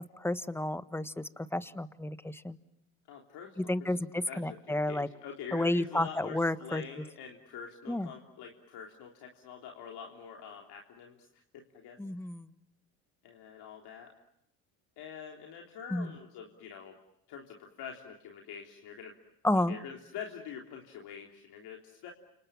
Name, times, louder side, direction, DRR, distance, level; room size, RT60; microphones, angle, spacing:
voice 1, 0.2-2.6 3.6-5.1 5.5-6.8 7.9-8.1 12.0-12.5 15.9-16.1 19.4-19.8, left 1 dB, 5° left, 13 dB, 1.4 m, -31 dB
voice 2, 3.1-4.0 4.3-12.0 13.2-14.1 15.0-17.0 17.3-19.2 19.5-22.1, left 7 dB, 70° left, 1 dB, 3.6 m, -46 dB
30.0 x 27.0 x 7.2 m, 0.80 s
supercardioid pair, 75°, 40 cm